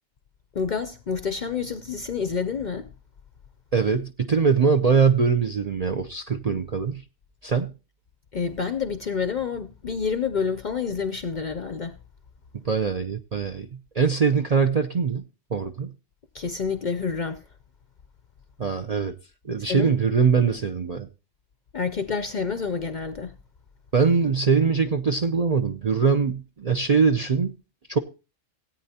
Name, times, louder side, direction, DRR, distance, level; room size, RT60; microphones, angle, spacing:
voice 1, 0.5-2.9 8.3-12.0 16.3-17.4 19.7-19.9 21.7-23.3, left 5 dB, 50° left, 0.6 m, -28 dB
voice 2, 3.7-7.0 7.4-7.7 12.6-13.7 13.9-15.2 15.5-15.9 18.6-19.1 19.4-21.1 23.9-27.5 27.9-28.0, right 5 dB, 45° right, 0.5 m, -22 dB
17.0 x 9.0 x 2.8 m
omnidirectional pair, 1.3 m